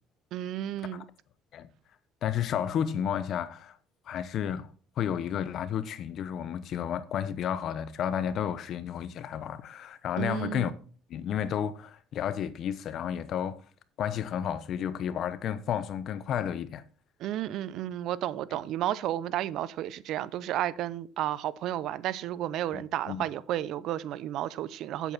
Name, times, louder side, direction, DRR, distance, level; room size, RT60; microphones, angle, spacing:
voice 1, 0.3-1.0 10.2-10.7 17.2-25.1, right 12 dB, 65° right, 0.6 m, -32 dB
voice 2, 2.2-3.8 4.1-4.7 5.0-10.7 11.1-13.6 14.0-16.8 22.7-23.3, left 9 dB, 55° left, 0.9 m, -32 dB
9.1 x 8.2 x 4.2 m
cardioid pair, 110°, 0 cm